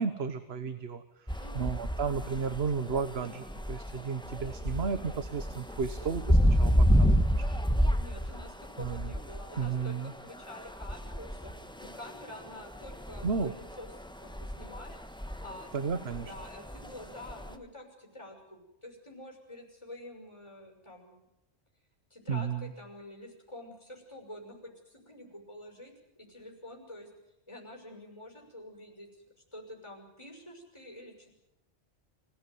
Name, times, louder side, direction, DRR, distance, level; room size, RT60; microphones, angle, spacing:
voice 1, 0.0-7.4 7.8-8.0 8.8-9.1 9.6-10.1 13.2-13.5 15.7-16.3 22.3-22.7, right 5 dB, 65° right, 10 dB, 1.4 m, -33 dB
sound 1, 1.3-17.5, equal, 5° left, 1.3 m, -30 dB
voice 2, 1.4-1.8 7.9-11.5 11.8-13.9 14.2-15.7 16.1-21.2 22.1-27.1 27.5-29.1 29.3-31.3, left 1 dB, 25° left, 1 dB, 6.1 m, -48 dB
26.0 x 17.5 x 9.4 m, 0.90 s
omnidirectional pair, 1.2 m